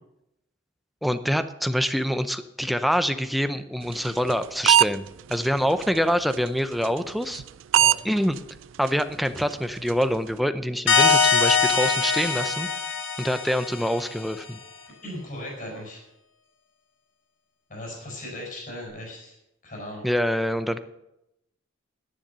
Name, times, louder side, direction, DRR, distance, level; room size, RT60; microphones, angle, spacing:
voice 1, 1.0-7.4 8.0-8.4 8.8-12.7 13.2-14.6 20.0-20.8, equal, ahead, 10 dB, 0.6 m, -25 dB
sound 1, 3.9-4.9 5.3-5.5 5.8-6.0 6.3-6.5 6.8-7.0 7.3-7.5 7.7-8.0 8.4-8.5 8.9-9.0 9.4-9.5 9.9-10.1, right 12 dB, 80° right, 0.3 m, -19 dB
sound 2, 10.9-14.3, left 5 dB, 80° left, 1.8 m, -22 dB
voice 2, 15.0-16.0 17.7-19.4 19.6-20.1, left 1 dB, 45° left, -1 dB, 4.8 m, -37 dB
10.5 x 10.0 x 6.8 m, 0.85 s
head